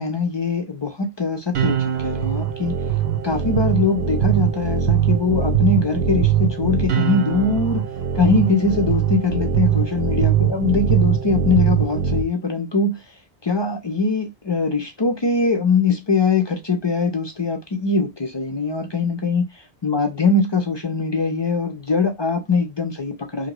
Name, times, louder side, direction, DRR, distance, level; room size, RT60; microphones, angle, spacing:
voice 1, 0.0-2.7 3.2-7.8 8.1-13.0 13.4-19.5 19.8-23.5, left 4 dB, 40° left, 0.4 m, -22 dB
sound 1, 1.5-12.2, right 9 dB, 75° right, 0.8 m, -21 dB
2.8 x 2.6 x 2.9 m
omnidirectional pair, 1.0 m